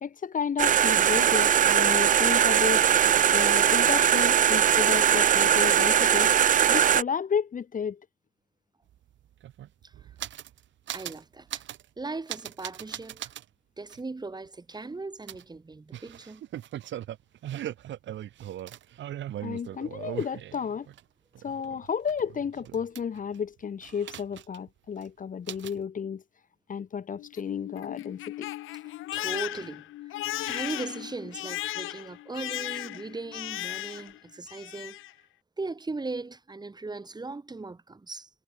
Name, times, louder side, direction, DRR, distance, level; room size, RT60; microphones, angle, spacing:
voice 1, 0.0-2.9 3.3-6.3 6.7-8.0 19.4-20.9 21.4-26.2 26.7-28.5, left 7 dB, 40° left, 1.3 m, -32 dB
sound 1, 0.6-7.0, right 9 dB, 40° right, 0.5 m, -21 dB
sound 2, 8.9-9.0 9.2-10.6 10.9-11.2 11.5-11.9 12.3-13.4 13.9-14.0 15.3-21.0 21.4-23.4 23.8-24.7 25.0-25.1 25.5-25.8, right 12 dB, 70° right, 1.4 m, -39 dB
voice 2, 10.9-11.6 12.0-13.3 13.8-16.4 29.1-30.2 30.4-35.0 35.6-38.3, right 3 dB, 20° right, 2.0 m, -38 dB
Crying sobbing, 27.2-34.2 34.5-35.1, left 16 dB, 85° left, 1.0 m, -36 dB
cardioid pair, 90°, 20 cm